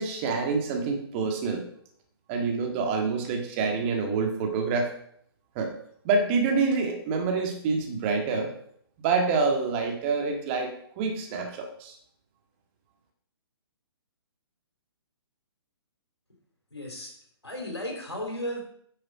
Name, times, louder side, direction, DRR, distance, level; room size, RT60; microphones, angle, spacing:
voice 1, 0.0-1.6 2.3-4.9 5.6-5.7 6.0-8.5 9.0-12.0, right 4 dB, 25° right, 3 dB, 1.9 m, -27 dB
voice 2, 16.7-17.1 17.4-18.6, left 1 dB, 80° left, 1 dB, 4.0 m, -34 dB
10.0 x 7.7 x 5.0 m, 0.66 s
figure-of-eight pair, 125°, 14 cm